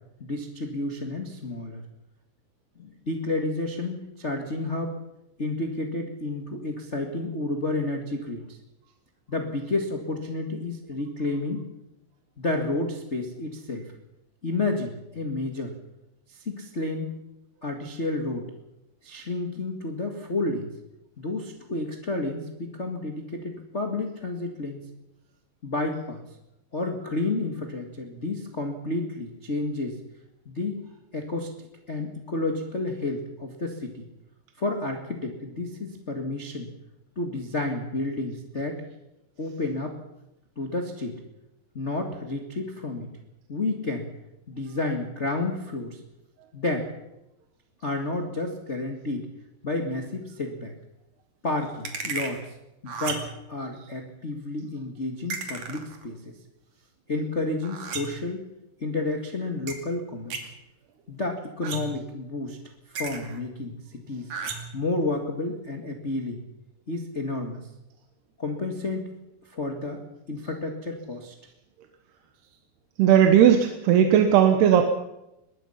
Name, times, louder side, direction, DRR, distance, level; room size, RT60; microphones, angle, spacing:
voice 1, 0.2-1.8 2.8-5.0 5.4-8.6 9.3-11.6 12.4-13.8 14.4-15.8 16.3-17.1 17.6-18.5 19.0-20.7 21.2-24.8 25.6-26.2 26.7-30.0 30.4-30.8 31.1-31.5 31.9-34.0 34.6-36.7 37.1-38.8 39.4-40.0 40.5-41.2 41.7-43.1 43.5-44.1 44.5-46.0 46.5-46.9 47.8-49.3 49.6-50.7 51.4-52.4 52.8-56.2 57.1-58.4 58.8-60.4 61.1-62.6 62.9-64.3 64.7-66.4 66.9-67.6 68.4-69.1 69.5-70.0 70.3-71.3, left 2 dB, 30° left, 2 dB, 1.4 m, -30 dB
sound 1, 51.8-52.4 52.9-53.4 55.3-56.0 57.6-58.3 59.7-59.8 60.3-60.5 61.6-62.1 63.0-63.4 64.3-64.8, right 5 dB, 50° right, 3.7 m, -34 dB
voice 2, 73.0-74.8, right 9 dB, 85° right, 5 dB, 3.4 m, -17 dB
23.5 x 20.5 x 5.8 m, 0.88 s
omnidirectional pair, 4.5 m